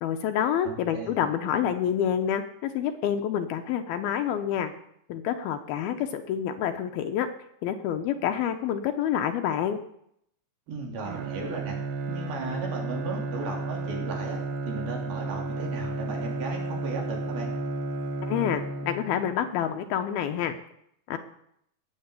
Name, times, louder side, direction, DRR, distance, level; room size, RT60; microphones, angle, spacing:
voice 1, 0.0-4.7 5.1-7.3 7.6-9.8 18.2-20.6 21.1-21.2, left 9 dB, 80° left, 7 dB, 2.2 m, -28 dB
voice 2, 0.6-1.2 10.7-11.8 12.1-17.5, right 3 dB, 55° right, 0 dB, 5.0 m, -36 dB
Bowed string instrument, 11.1-19.4, right 3 dB, 85° right, 3.7 m, -33 dB
19.0 x 7.5 x 8.2 m, 0.73 s
omnidirectional pair, 5.3 m